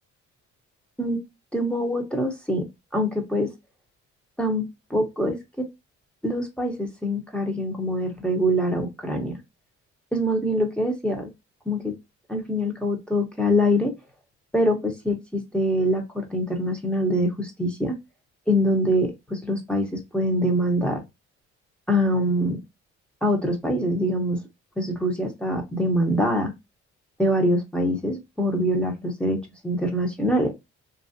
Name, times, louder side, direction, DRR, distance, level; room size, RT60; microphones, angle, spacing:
voice 1, 1.5-2.6 2.9-3.5 4.4-5.7 6.2-9.4 10.1-11.3 11.7-11.9 12.3-13.9 14.5-17.9 18.5-21.0 21.9-22.6 23.2-24.4 24.8-26.5 27.2-30.5, equal, 5° left, 0.9 m, -24 dB
3.0 x 2.6 x 2.5 m
cardioid pair, 90°, 30 cm